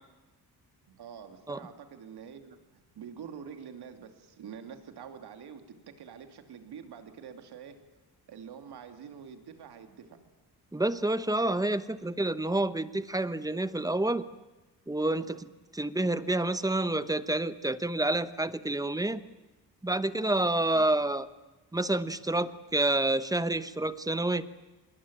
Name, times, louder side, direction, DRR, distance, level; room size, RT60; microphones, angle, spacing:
voice 1, 0.9-2.6 2.9-7.8 8.3-10.2 15.2-15.4 20.7-20.9, right 7 dB, 80° right, 6 dB, 3.0 m, -46 dB
voice 2, 10.7-14.2 14.9-15.5 15.7-19.2 19.8-21.3 21.7-24.5, right 2 dB, 10° right, 13 dB, 1.0 m, -28 dB
25.0 x 22.0 x 8.9 m, 1.1 s
cardioid pair, 130°, 39 cm